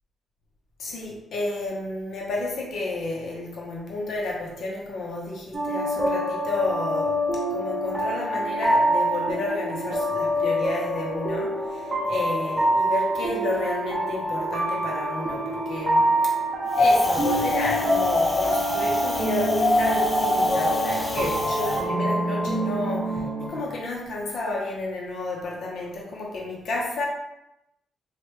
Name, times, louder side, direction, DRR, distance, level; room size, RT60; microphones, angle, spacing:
voice 1, 0.8-7.2 7.5-16.3 16.8-27.1, left 2 dB, 70° left, -3 dB, 0.9 m, -31 dB
sound 1, 5.5-23.5, right 1 dB, 30° right, 0.9 m, -26 dB
Wind, 16.7-21.8, left 2 dB, 20° left, 0.6 m, -25 dB
3.1 x 2.4 x 3.3 m, 0.89 s
cardioid pair, 90°, 0 cm